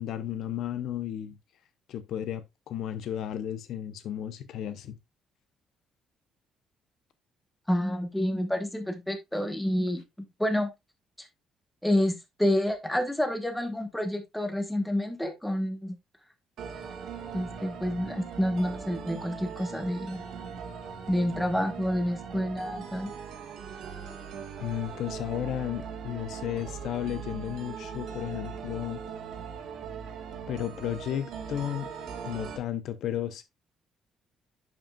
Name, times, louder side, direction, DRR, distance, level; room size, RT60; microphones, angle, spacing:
voice 1, 0.0-1.4 1.9-5.0 24.6-29.0 30.5-31.9 32.2-33.4, left 10 dB, 65° left, 0.7 m, -33 dB
voice 2, 7.7-10.0 10.4-10.7 11.2-11.3 11.8-16.0 17.3-20.2 21.1-23.1, left 1 dB, 5° left, 1.1 m, -28 dB
sound 1, 16.6-32.6, right 6 dB, 65° right, 2.0 m, -40 dB
10.5 x 5.2 x 2.3 m
cardioid pair, 160°, 0 cm